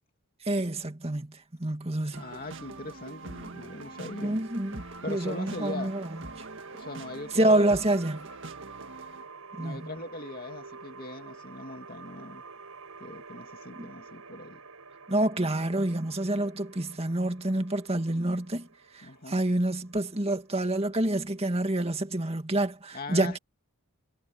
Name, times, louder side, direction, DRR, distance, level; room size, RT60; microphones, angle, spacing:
voice 1, 0.5-2.2 4.2-6.1 6.4-6.5 7.4-8.3 9.6-9.9 13.7-13.9 15.1-18.7 18.9-23.4, right 1 dB, 25° right, 2.1 m, -28 dB
voice 2, 2.1-4.5 5.0-6.0 6.7-7.6 9.6-12.4 13.0-14.6 19.0-19.4 22.9-23.4, left 2 dB, 40° left, 2.5 m, -40 dB
sound 1, 2.1-9.3, right 3 dB, 55° right, 1.9 m, -44 dB
sound 2, 3.0-22.0, right 4 dB, 80° right, 5.6 m, -49 dB
head